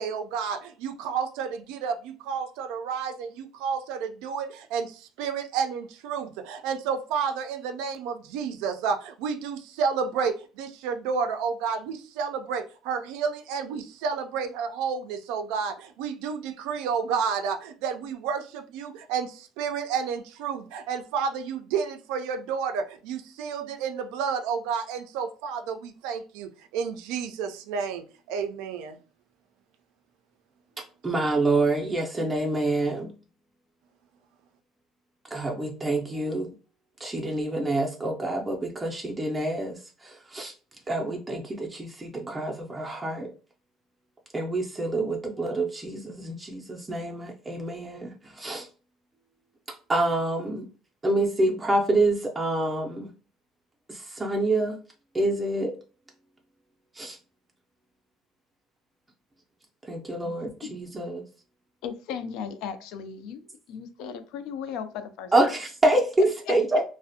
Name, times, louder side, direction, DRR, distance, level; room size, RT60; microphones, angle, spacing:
voice 1, 0.0-29.0, right 6 dB, 90° right, 7 dB, 0.3 m, -31 dB
voice 2, 31.0-33.1 35.3-36.5 37.0-40.5 40.9-43.3 44.3-48.7 49.9-50.7 51.0-53.1 53.9-54.8 55.1-55.7 57.0-57.2 59.9-61.2 65.3-66.8, right 2 dB, 15° right, 0 dB, 0.4 m, -27 dB
voice 3, 61.8-63.4 63.7-65.3, left 7 dB, 80° left, 10 dB, 0.3 m, -36 dB
2.4 x 2.0 x 2.6 m, 0.36 s
cardioid pair, 125°, 0 cm